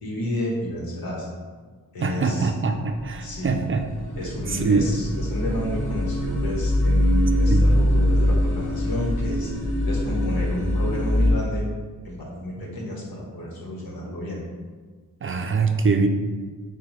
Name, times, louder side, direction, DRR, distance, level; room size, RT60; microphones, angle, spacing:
voice 1, 0.0-1.3 1.9-2.5 3.2-3.6 4.1-11.7 12.0-14.4, left 1 dB, 80° left, -2 dB, 1.2 m, -31 dB
voice 2, 2.0-3.8 4.5-4.9 7.5-7.7 15.2-16.1, right 4 dB, 35° right, 5 dB, 0.4 m, -23 dB
sound 1, 2.8-11.3, left 1 dB, 55° left, 1.2 m, -23 dB
6.7 x 2.2 x 3.1 m, 1.5 s
cardioid pair, 55°, 36 cm